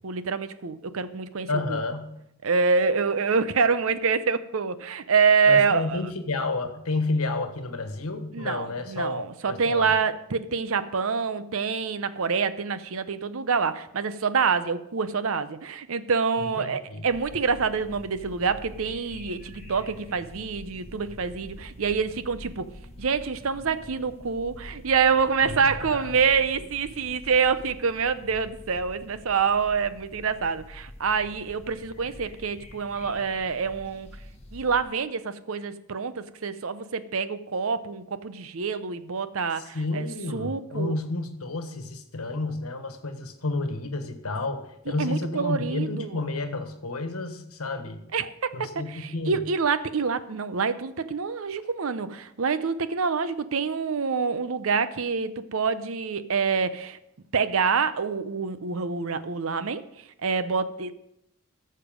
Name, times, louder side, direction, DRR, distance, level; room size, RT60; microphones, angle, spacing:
voice 1, 0.0-1.8 2.4-6.0 8.3-22.7 23.0-34.1 34.5-40.1 40.3-40.9 45.0-46.2 48.1-57.0 57.3-59.8 60.2-60.9, right 5 dB, 70° right, 13 dB, 0.6 m, -26 dB
voice 2, 1.5-2.1 5.5-9.9 16.4-17.0 25.4-26.2 39.6-48.0 48.5-49.4, left 2 dB, 80° left, 8 dB, 1.3 m, -31 dB
sound 1, 17.1-34.8, left 1 dB, 30° left, 1.5 m, -46 dB
sound 2, 18.1-27.7, equal, 25° right, 2.3 m, -55 dB
14.0 x 6.7 x 5.1 m, 0.78 s
head